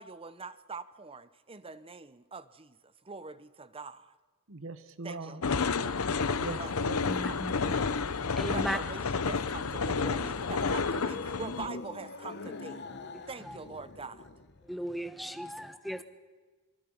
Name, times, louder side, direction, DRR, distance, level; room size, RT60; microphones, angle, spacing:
voice 1, 0.0-4.1 5.0-5.8 6.6-7.9 8.5-12.9 13.3-14.3, right 4 dB, 25° right, 14 dB, 0.7 m, -44 dB
voice 2, 4.5-5.5 6.4-7.0 16.0-16.1, right 3 dB, 60° right, 12 dB, 1.1 m, -41 dB
sound 1, 5.4-11.7, left 4 dB, 70° left, 0.8 m, -30 dB
voice 3, 7.1-7.8 8.3-8.8 10.6-10.7 13.1-13.6 14.6-16.0, equal, ahead, 8 dB, 1.0 m, -37 dB
sound 2, 9.7-14.7, left 3 dB, 50° left, 1.0 m, -44 dB
25.5 x 24.0 x 5.6 m, 1.4 s
head